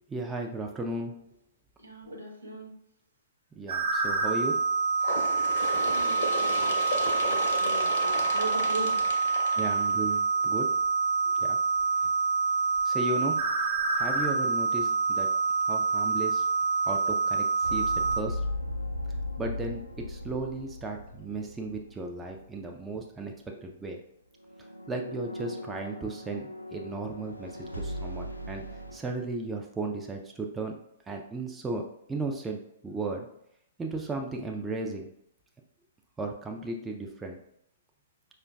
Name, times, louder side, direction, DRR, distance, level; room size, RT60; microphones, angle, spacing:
voice 1, 0.1-1.1 3.6-4.6 9.6-10.7 11.4-11.6 12.8-13.4 14.0-15.3 15.7-16.4 16.8-18.4 19.4-24.0 24.9-28.6 28.9-30.7 31.1-31.8 32.1-33.3 33.8-35.1 36.2-37.4, right 2 dB, 10° right, 1 dB, 0.4 m, -35 dB
voice 2, 1.8-2.7 5.9-6.7 7.2-8.9, right 1 dB, 80° right, -1 dB, 0.8 m, -39 dB
sound 1, 3.7-18.2, right 4 dB, 40° right, 1.0 m, -27 dB
Bird, 5.0-10.4 11.3-11.4 11.8-11.9 12.8-12.9 13.8-13.9 14.8-14.9, left 2 dB, 55° left, 0.6 m, -34 dB
sound 2, 17.6-22.5 22.7-23.0 24.4-29.0, left 1 dB, 85° left, 0.3 m, -38 dB
4.9 x 2.1 x 2.3 m, 0.75 s
figure-of-eight pair, 115°, 0 cm